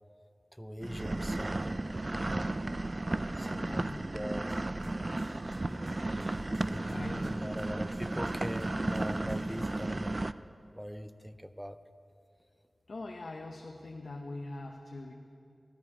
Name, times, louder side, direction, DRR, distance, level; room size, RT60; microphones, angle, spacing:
voice 1, 0.5-2.6 3.0-4.5 6.4-10.2 10.7-11.8, equal, ahead, 10 dB, 0.6 m, -42 dB
sound 1, 0.8-10.3, right 2 dB, 40° right, 0.4 m, -34 dB
voice 2, 3.5-4.2 6.9-7.5 12.9-15.1, left 2 dB, 75° left, 1 dB, 0.9 m, -43 dB
sound 2, 4.5-10.0, left 1 dB, 35° left, 2.4 m, -52 dB
17.5 x 13.0 x 4.9 m, 2.6 s
wide cardioid pair, 65°, 0 cm